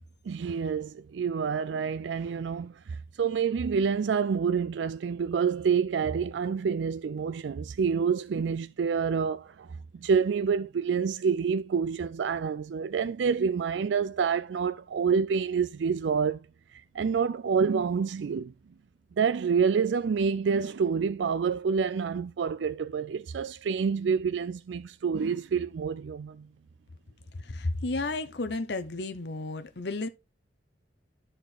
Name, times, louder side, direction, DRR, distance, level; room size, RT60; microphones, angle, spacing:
voice 1, 0.3-9.7 9.9-16.4 16.7-18.5 19.2-26.5, right 6 dB, 80° right, 0.4 m, -28 dB
voice 2, 27.4-30.1, left 2 dB, 65° left, 0.8 m, -32 dB
12.5 x 4.5 x 3.8 m
head